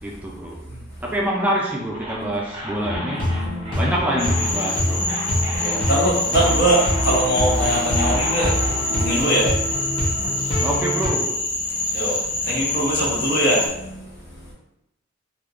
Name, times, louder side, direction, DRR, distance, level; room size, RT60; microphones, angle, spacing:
voice 1, 0.0-0.6 1.0-3.3 3.7-5.1 10.6-11.4, equal, 10° right, -3 dB, 0.3 m, -26 dB
sound 1, 1.9-8.8, equal, 25° right, 0.7 m, -34 dB
sound 2, 2.8-11.1, equal, 25° left, 0.8 m, -25 dB
Cricket / Frog, 4.2-13.7, left 2 dB, 75° left, 1.1 m, -26 dB
voice 2, 5.5-9.5 10.1-10.2 10.4-10.5 11.6-14.5, right 1 dB, 55° left, -5 dB, 1.2 m, -23 dB
3.5 x 2.7 x 2.4 m, 0.86 s
head